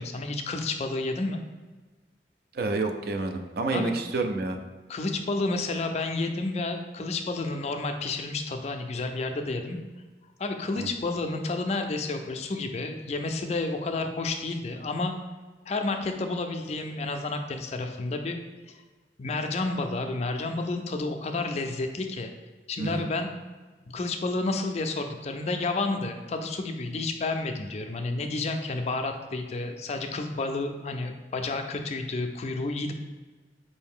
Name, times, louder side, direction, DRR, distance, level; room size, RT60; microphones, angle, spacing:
voice 1, 0.0-1.4 3.7-3.9 4.9-9.8 10.4-15.1 15.7-18.4 18.7-18.8 19.2-22.3 22.7-23.4 23.9-32.9, left 3 dB, 35° left, 5 dB, 0.3 m, -30 dB
voice 2, 2.5-4.6 10.8-10.9 22.8-23.1, right 3 dB, 55° right, 5 dB, 0.4 m, -29 dB
4.5 x 2.7 x 3.6 m, 1.3 s
head